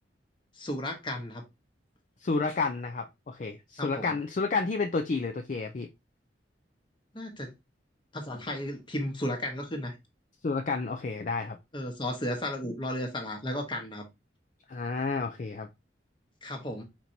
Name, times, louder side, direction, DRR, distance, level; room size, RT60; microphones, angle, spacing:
voice 1, 0.6-1.4 3.8-4.1 7.1-7.5 8.1-9.9 11.7-14.0 16.4-16.8, left 1 dB, 25° left, 1.1 m, -34 dB
voice 2, 2.2-5.9 10.4-11.6 12.6-12.7 14.7-15.7, left 4 dB, 45° left, 0.4 m, -30 dB
4.4 x 4.3 x 2.7 m
head